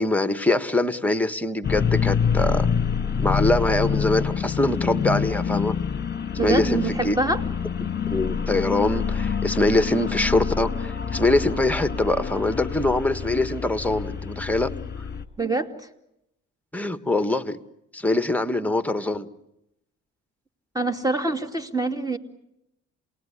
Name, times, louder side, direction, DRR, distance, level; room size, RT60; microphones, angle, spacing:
voice 1, 0.0-2.7 3.2-5.8 6.4-7.2 7.8-14.7 16.7-17.6 17.9-19.3, left 2 dB, 5° left, 11 dB, 1.5 m, -23 dB
sound 1, 1.6-15.2, left 7 dB, 35° left, 1.8 m, -26 dB
voice 2, 6.4-7.4 15.4-15.9 20.7-22.2, right 2 dB, 10° right, 7 dB, 2.7 m, -25 dB
28.0 x 19.5 x 10.0 m, 0.84 s
cardioid pair, 90°, 30 cm